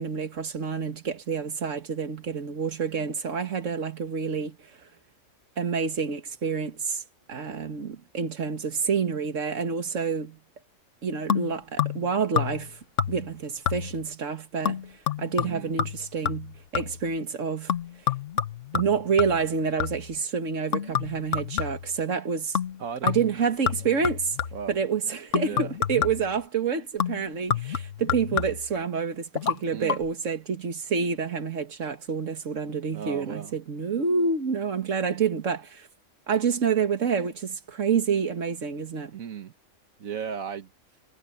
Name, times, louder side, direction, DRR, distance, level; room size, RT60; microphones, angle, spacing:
voice 1, 0.0-4.6 5.6-7.0 7.3-10.4 11.0-12.8 13.1-17.7 18.7-22.6 23.0-24.4 24.7-35.9 36.3-39.1, right 6 dB, 65° right, 1.9 m, -28 dB
sound 1, 11.3-12.1 12.4-12.7 13.0-13.4 13.7-14.1 14.6-17.1 17.7-20.2 20.7-22.0 22.5-22.8 23.1-24.7 25.3-26.4 27.0-28.8 29.3-29.6 29.9-30.0, left 8 dB, 65° left, 1.4 m, -29 dB
voice 2, 15.4-15.7 22.8-23.2 24.5-24.8 25.4-25.8 29.7-30.0 32.9-33.6 39.1-39.5 40.0-40.7, right 7 dB, 80° right, 1.6 m, -36 dB
omnidirectional pair, 1.4 m